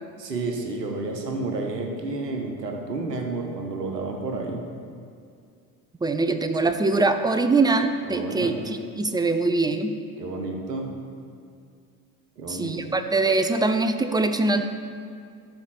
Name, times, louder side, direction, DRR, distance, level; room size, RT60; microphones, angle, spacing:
voice 1, 0.2-4.6 8.1-8.6 10.2-11.0 12.4-12.8, right 3 dB, 85° right, 3 dB, 1.0 m, -30 dB
voice 2, 6.0-9.9 12.5-14.6, right 3 dB, 10° right, 8 dB, 0.4 m, -23 dB
12.5 x 4.4 x 6.0 m, 2.3 s
figure-of-eight pair, 55°, 48 cm